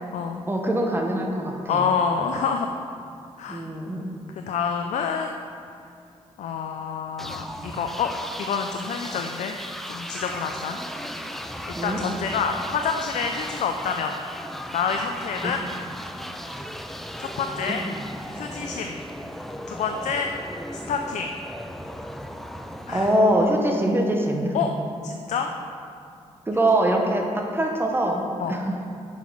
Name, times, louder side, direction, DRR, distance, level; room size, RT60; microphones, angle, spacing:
voice 1, 0.5-1.9 3.5-4.1 11.7-12.0 22.9-24.5 26.5-28.8, right 1 dB, 20° right, 1 dB, 0.8 m, -23 dB
voice 2, 1.7-2.8 3.4-3.6 4.5-5.4 6.4-8.1 8.4-9.6 9.9-10.8 11.1-11.2 11.7-14.2 14.7-15.6 17.2-17.8 18.3-19.0 19.7-20.3 20.9-21.3 22.9-23.1 24.5-24.7 25.0-25.5 28.4-28.6, left 6 dB, 80° left, 4 dB, 0.4 m, -27 dB
sound 1, 7.2-23.9, equal, ahead, 0.3 m, -36 dB
6.1 x 5.7 x 4.6 m, 2.5 s
cardioid pair, 95°, 12 cm